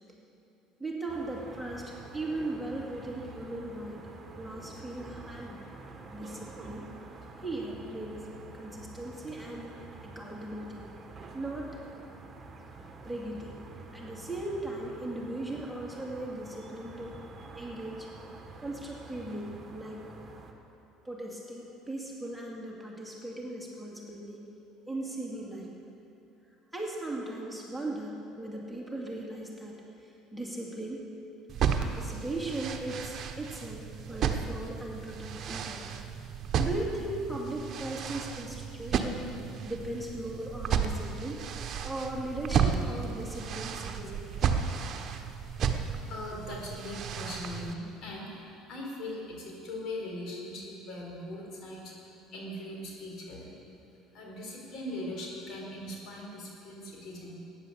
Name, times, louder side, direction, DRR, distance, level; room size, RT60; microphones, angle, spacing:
voice 1, 0.8-4.1 4.4-5.6 6.1-6.9 7.4-8.2 8.5-9.7 10.0-10.8 11.3-11.8 13.0-13.6 13.9-17.2 17.5-18.1 18.6-20.0 21.0-24.5 24.9-25.7 26.7-31.0 31.8-35.9 36.6-39.2 39.6-41.4 41.8-44.5, right 2 dB, 5° right, -3 dB, 2.4 m, -38 dB
sound 1, 1.1-20.5, right 3 dB, 25° right, 1.8 m, -48 dB
sound 2, 31.5-47.7, right 7 dB, 50° right, 1.0 m, -33 dB
voice 2, 45.8-51.9 52.3-53.5 54.1-57.4, left 1 dB, 60° left, -1 dB, 4.0 m, -40 dB
14.0 x 9.9 x 7.0 m, 2.8 s
supercardioid pair, 85°, 0 cm